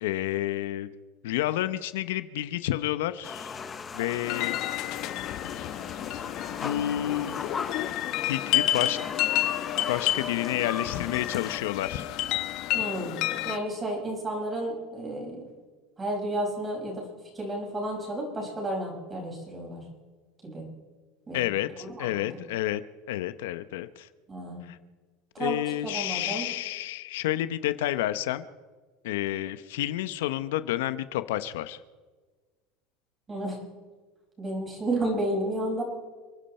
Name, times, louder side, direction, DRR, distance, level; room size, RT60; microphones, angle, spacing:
voice 1, 0.0-0.9 1.2-3.6 3.9-4.6 6.6-7.5 8.2-9.0 9.9-12.1 21.3-22.8 23.1-24.1 24.7-24.8 25.4-28.4 29.0-31.8, left 14 dB, 85° left, 13 dB, 0.9 m, -30 dB
sound 1, 3.2-11.6, left 5 dB, 20° left, 1.1 m, -38 dB
sound 2, 4.2-13.6, left 14 dB, 55° left, 1.1 m, -30 dB
voice 2, 12.7-13.1 13.5-15.4 16.0-17.0 17.3-19.8 20.4-20.6 21.3-21.4 21.8-22.3 24.3-24.6 25.3-26.5 33.3-33.6 34.4-35.8, right 1 dB, 20° right, 0 dB, 5.8 m, -32 dB
29.0 x 10.5 x 4.4 m, 1.4 s
supercardioid pair, 135°, 0 cm